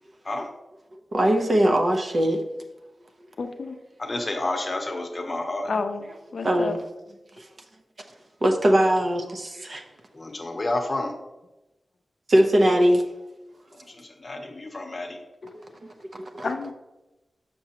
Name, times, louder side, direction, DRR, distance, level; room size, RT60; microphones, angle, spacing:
voice 1, 1.1-2.4 6.4-6.8 7.4-7.5 8.4-9.8 12.3-13.0 16.0-16.5, right 1 dB, 45° right, 4 dB, 0.8 m, -21 dB
voice 2, 3.4-3.8 5.7-6.0 6.3-6.7 16.4-16.7, left 4 dB, 60° left, 6 dB, 0.5 m, -29 dB
voice 3, 4.0-5.7 10.1-11.1 13.9-15.2, left 2 dB, 30° left, 3 dB, 0.9 m, -30 dB
6.8 x 5.9 x 2.9 m, 1.0 s
wide cardioid pair, 135°, 0 cm